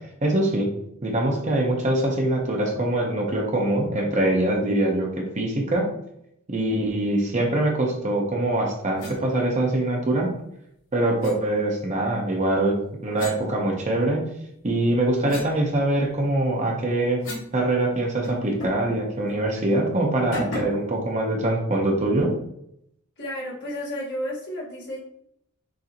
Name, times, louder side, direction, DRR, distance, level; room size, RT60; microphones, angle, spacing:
voice 1, 0.2-0.7 1.0-5.9 6.5-10.3 10.9-14.2 14.6-17.2 17.5-22.3, right 1 dB, 30° right, 0 dB, 0.8 m, -23 dB
sound 1, 9.0-9.2 11.2-11.4 13.1-14.2 14.7-17.6 17.8-17.9 18.2-18.9 19.3-19.4 20.3-20.9, left 2 dB, 70° left, 1.6 m, -37 dB
voice 2, 23.2-25.0, equal, 50° left, -4 dB, 1.6 m, -32 dB
6.4 x 2.7 x 2.9 m, 0.75 s
head